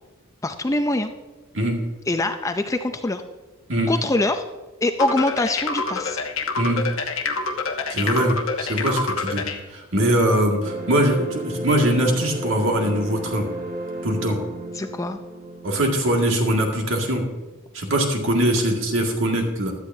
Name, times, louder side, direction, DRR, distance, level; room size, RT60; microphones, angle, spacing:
voice 1, 0.4-1.1 2.1-3.2 3.9-4.4 4.8-6.2 14.7-15.2, left 2 dB, 15° left, 7 dB, 0.5 m, -23 dB
sound 1, 5.0-9.6, left 4 dB, 65° left, 1.0 m, -26 dB
voice 2, 7.9-9.4 9.7-13.5 14.0-14.4 15.6-17.2 17.7-19.7, right 1 dB, 60° right, 1 dB, 2.0 m, -22 dB
sound 2, 10.6-17.6, right 2 dB, 40° right, 1.8 m, -34 dB
16.0 x 11.5 x 2.7 m, 1.2 s
head